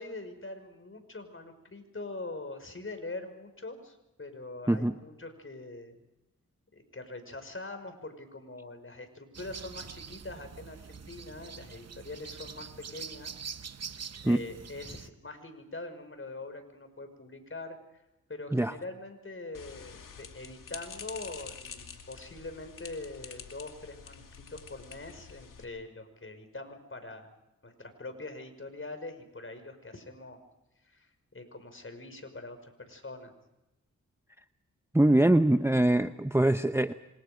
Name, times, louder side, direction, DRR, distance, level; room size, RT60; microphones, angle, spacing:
voice 1, 0.0-6.0 6.7-13.3 14.2-17.8 18.3-24.2 24.5-27.3 27.6-30.4 30.8-33.3, left 2 dB, 40° left, 8 dB, 5.8 m, -43 dB
sound 1, 9.3-15.1, right 6 dB, 50° right, 1.0 m, -44 dB
sound 2, 19.5-25.6, left 6 dB, 80° left, 2.6 m, -47 dB
voice 2, 34.9-36.9, right 1 dB, 10° right, 9 dB, 0.9 m, -23 dB
27.0 x 26.5 x 5.3 m, 0.95 s
cardioid pair, 55°, 32 cm